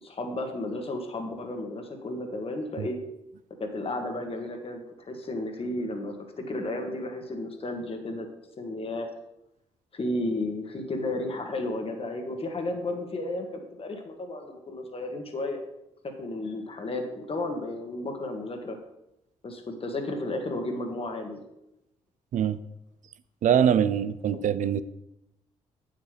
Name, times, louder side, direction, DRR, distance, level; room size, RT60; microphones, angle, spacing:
voice 1, 0.0-3.0 3.6-8.3 8.6-9.1 9.9-15.6 16.2-18.8 19.4-21.4 24.3-24.4, left 2 dB, 45° left, 4 dB, 1.6 m, -33 dB
voice 2, 23.4-24.8, right 8 dB, 65° right, 13 dB, 0.6 m, -23 dB
8.4 x 7.8 x 3.4 m, 0.86 s
supercardioid pair, 55°, 14 cm